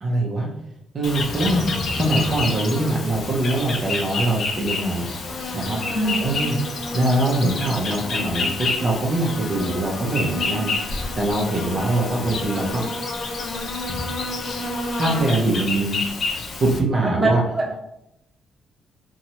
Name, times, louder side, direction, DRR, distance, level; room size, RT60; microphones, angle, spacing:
voice 1, 0.0-0.5 0.9-1.6 1.9-5.1 5.5-5.8 6.2-6.5 6.9-12.8 15.0-16.1 16.6-17.4, right 2 dB, 45° right, -3 dB, 0.6 m, -23 dB
Insect, 1.0-16.8, left 3 dB, 60° left, 0.5 m, -28 dB
voice 2, 17.2-17.8, right 2 dB, 25° right, -4 dB, 1.1 m, -23 dB
2.9 x 2.3 x 2.8 m, 0.84 s
cardioid pair, 90°, 0 cm